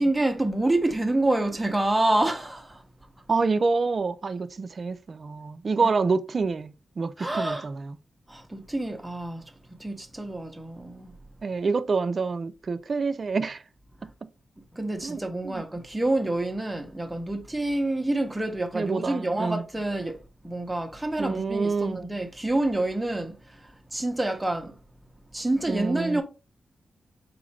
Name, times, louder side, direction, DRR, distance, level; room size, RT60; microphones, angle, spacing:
voice 1, 0.0-2.8 5.8-5.9 7.2-7.7 8.3-9.5 9.8-11.1 14.7-23.4 23.9-24.7 25.3-26.2, right 2 dB, 10° right, 0.7 m, -27 dB
voice 2, 3.3-8.0 11.4-13.6 15.0-15.6 18.7-19.6 21.2-22.0 25.7-26.2, right 4 dB, 45° right, 0.3 m, -27 dB
4.2 x 2.5 x 3.1 m
wide cardioid pair, 105°, 0 cm